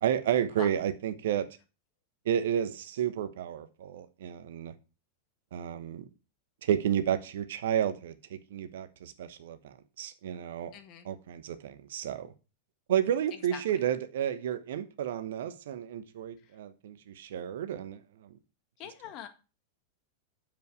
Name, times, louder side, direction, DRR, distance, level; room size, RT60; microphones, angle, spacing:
voice 1, 0.0-1.5 2.2-4.7 5.5-6.1 6.6-10.7 11.0-12.3 12.9-18.4, right 9 dB, 60° right, 1.0 m, -31 dB
voice 2, 10.7-11.1 13.5-13.6 18.8-19.3, left 10 dB, 40° left, 1.7 m, -42 dB
9.5 x 7.4 x 4.7 m
figure-of-eight pair, 90°, 0 cm